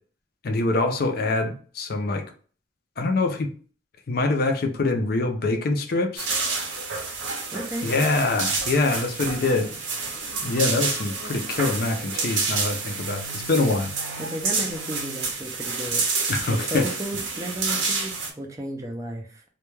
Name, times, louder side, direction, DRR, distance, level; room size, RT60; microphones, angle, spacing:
voice 1, 0.4-2.2 3.0-3.5 4.1-6.3 7.8-9.7 10.4-13.9 16.3-16.8, left 3 dB, 50° left, 4 dB, 0.4 m, -24 dB
sound 1, 6.2-18.3, right 4 dB, 85° right, 0.7 m, -29 dB
voice 2, 7.5-7.9 14.2-19.4, equal, 15° right, 2 dB, 0.4 m, -34 dB
2.2 x 2.2 x 3.0 m, 0.41 s
head